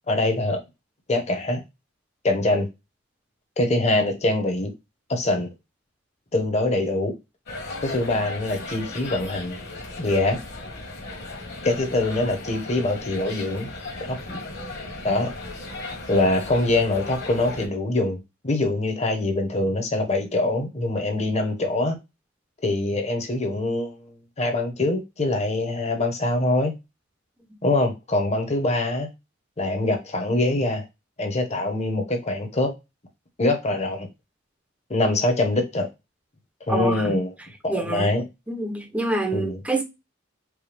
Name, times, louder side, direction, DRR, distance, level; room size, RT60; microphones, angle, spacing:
voice 1, 0.1-0.6 1.1-1.6 2.2-2.7 3.6-4.7 5.1-5.5 6.3-7.1 7.8-9.6 10.0-10.4 11.6-13.7 14.0-14.4 15.0-15.3 16.1-18.2 18.4-22.0 22.6-26.7 27.6-29.1 29.6-30.8 31.2-32.7 33.4-34.1 34.9-35.9 36.7-37.3 37.6-38.3 39.3-39.6, left 2 dB, 35° left, 0.9 m, -24 dB
sound 1, 7.5-17.7, left 2 dB, 55° left, 1.4 m, -36 dB
voice 2, 36.7-37.1 37.7-38.1 38.5-39.8, right 2 dB, 5° right, 0.7 m, -26 dB
4.7 x 2.3 x 3.3 m
head